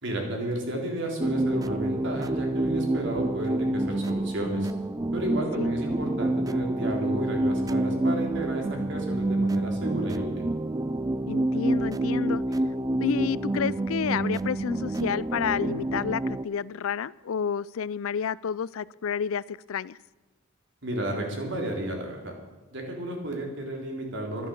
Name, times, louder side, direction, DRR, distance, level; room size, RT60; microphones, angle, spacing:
voice 1, 0.0-4.7 5.1-8.6 8.9-10.5 20.8-22.4 22.7-24.5, right 1 dB, 60° right, 1 dB, 3.5 m, -32 dB
sound 1, 1.2-16.4, right 1 dB, 15° right, 0.4 m, -28 dB
voice 2, 11.3-12.4 13.0-20.0, left 7 dB, 80° left, 21 dB, 0.4 m, -30 dB
13.5 x 11.5 x 7.0 m, 1.2 s
head